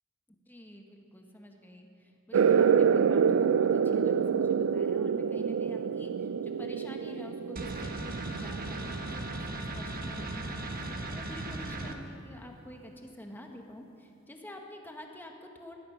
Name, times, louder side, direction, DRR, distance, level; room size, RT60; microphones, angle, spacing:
voice 1, 0.5-15.8, equal, 10° left, 2 dB, 1.3 m, -47 dB
sound 1, 2.3-9.5, right 7 dB, 75° right, 0.4 m, -27 dB
sound 2, 7.6-11.9, right 2 dB, 45° right, 1.1 m, -37 dB
17.0 x 12.5 x 5.7 m, 2.8 s
head